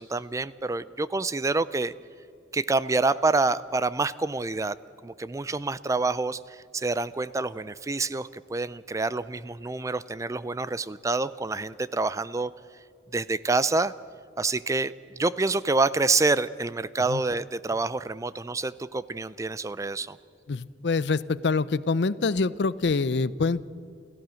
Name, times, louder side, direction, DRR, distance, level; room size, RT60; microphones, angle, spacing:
voice 1, 0.0-1.9 2.5-4.8 5.0-12.5 13.1-13.9 14.4-20.2, right 3 dB, 20° right, 17 dB, 0.4 m, -27 dB
voice 2, 20.5-23.6, left 4 dB, 75° left, 18 dB, 0.6 m, -25 dB
29.0 x 14.5 x 6.4 m, 2.4 s
head